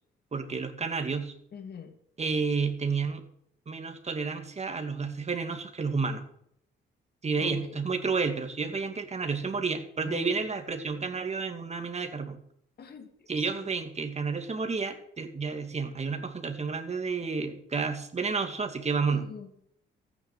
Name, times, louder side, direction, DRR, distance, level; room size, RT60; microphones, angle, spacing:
voice 1, 0.3-1.3 2.2-3.2 3.7-6.2 7.2-12.4 13.3-19.2, right 4 dB, 35° right, 6 dB, 2.4 m, -31 dB
voice 2, 1.5-2.0 7.4-7.8 10.0-10.5 12.8-13.7 19.1-19.7, left 6 dB, 55° left, 6 dB, 2.5 m, -44 dB
14.0 x 9.6 x 8.0 m, 0.71 s
cardioid pair, 90°, 20 cm